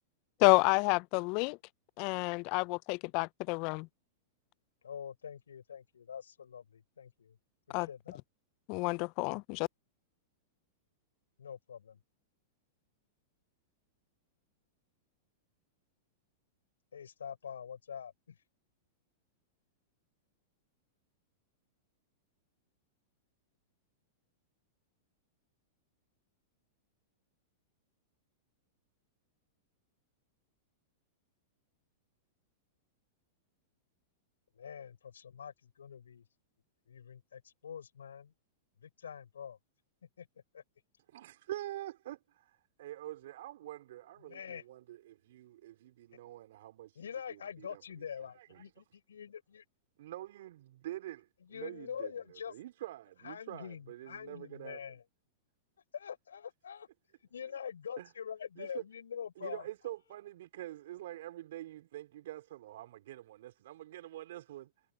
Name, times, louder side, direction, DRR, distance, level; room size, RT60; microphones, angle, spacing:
voice 1, 0.4-1.6 2.0-3.9 7.7-7.9 8.7-9.7, left 29 dB, 50° left, 0.6 m, -29 dB
voice 2, 4.8-7.4 7.7-8.2 11.4-12.0 16.9-18.4 34.5-36.2 36.9-38.3 38.8-39.6 40.2-40.3 40.5-40.6 44.2-44.6 47.0-49.6 51.4-52.5 53.2-55.0 55.9-56.9 57.3-59.7, left 7 dB, 80° left, 4.2 m, -45 dB
voice 3, 41.1-48.8 50.0-54.8 58.0-58.1 58.6-58.8 59.4-64.7, right 14 dB, 65° right, 4.8 m, -46 dB
hypercardioid pair, 105°, 0 cm